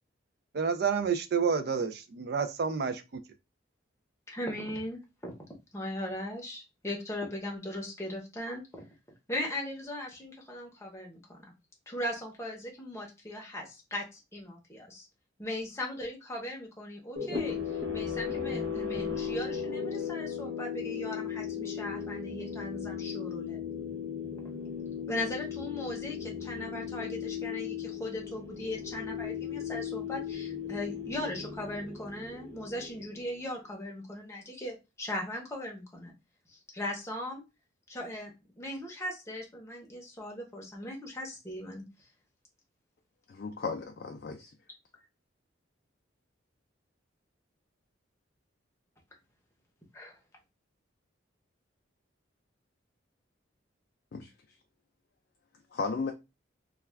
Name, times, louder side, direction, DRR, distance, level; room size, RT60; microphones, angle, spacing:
voice 1, 0.5-3.0, right 6 dB, 50° right, 0.3 m, -29 dB
voice 2, 4.3-5.3 5.7-8.9 9.3-11.4 11.9-15.1 15.4-23.6 25.1-36.1 36.5-37.4 37.9-41.8 49.9-50.2, left 1 dB, 15° left, 0.7 m, -38 dB
sound 1, 17.2-33.4, left 7 dB, 65° right, 0.8 m, -36 dB
voice 3, 43.3-44.5 54.1-54.3 55.7-56.1, left 4 dB, 50° left, 0.3 m, -35 dB
2.3 x 2.2 x 3.2 m
head